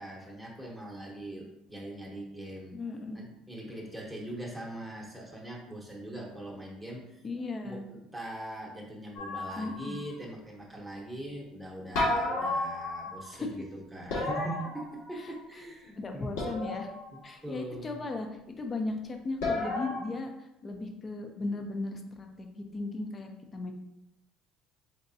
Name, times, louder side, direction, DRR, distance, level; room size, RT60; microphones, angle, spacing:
voice 1, 0.0-2.8 3.1-7.2 7.6-16.3 17.1-18.0, right 1 dB, ahead, -3 dB, 1.0 m, -42 dB
voice 2, 2.7-3.3 7.2-7.8 9.6-10.0 13.3-13.5 15.2-15.3 16.0-16.9 17.2-23.7, left 3 dB, 30° left, 4 dB, 0.6 m, -36 dB
sound 1, 9.2-10.1 11.9-13.3 14.1-15.4 16.4-17.2 19.4-20.0, left 2 dB, 85° left, 1.4 m, -32 dB
4.1 x 3.4 x 2.7 m, 0.87 s
cardioid pair, 115°, 0 cm